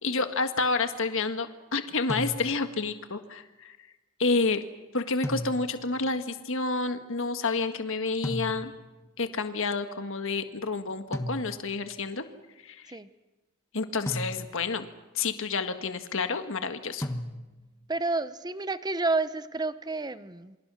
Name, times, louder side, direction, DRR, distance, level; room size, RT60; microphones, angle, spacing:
voice 1, 0.0-3.8 4.2-4.6 4.9-8.7 9.2-12.2 12.6-13.0 13.7-14.9 15.1-17.1, left 3 dB, 60° left, 8 dB, 1.6 m, -29 dB
sound 1, 2.1-2.8 5.2-6.0 8.2-9.0 11.1-11.9 14.1-14.8 17.0-17.8, left 1 dB, 10° left, 1.3 m, -36 dB
voice 2, 17.9-20.6, right 3 dB, 20° right, 13 dB, 0.8 m, -30 dB
28.0 x 25.5 x 6.3 m, 1.1 s
head